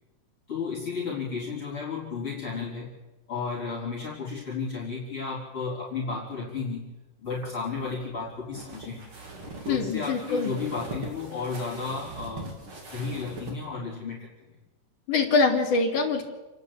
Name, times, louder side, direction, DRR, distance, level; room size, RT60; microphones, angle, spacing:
voice 1, 0.5-2.9 3.3-6.8 7.2-9.0 9.7-12.6 12.8-14.3, left 5 dB, 40° left, -5 dB, 4.9 m, -33 dB
sound 1, 7.3-13.6, right 2 dB, 40° right, 3.7 m, -41 dB
voice 2, 9.7-10.5 15.1-16.2, left 4 dB, 65° left, -5 dB, 4.4 m, -24 dB
30.0 x 10.5 x 8.7 m, 1.1 s
omnidirectional pair, 3.8 m